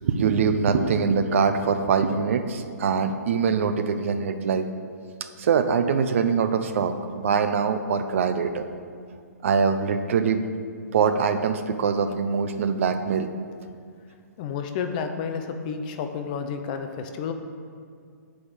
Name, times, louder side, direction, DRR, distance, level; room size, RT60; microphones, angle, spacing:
voice 1, 0.0-4.7 5.4-8.7 9.4-10.5 10.9-13.3, right 6 dB, 45° right, 8 dB, 0.6 m, -23 dB
voice 2, 14.4-17.3, left 6 dB, 30° left, 7 dB, 0.5 m, -31 dB
8.2 x 5.0 x 7.2 m, 2.2 s
hypercardioid pair, 160°, 9 cm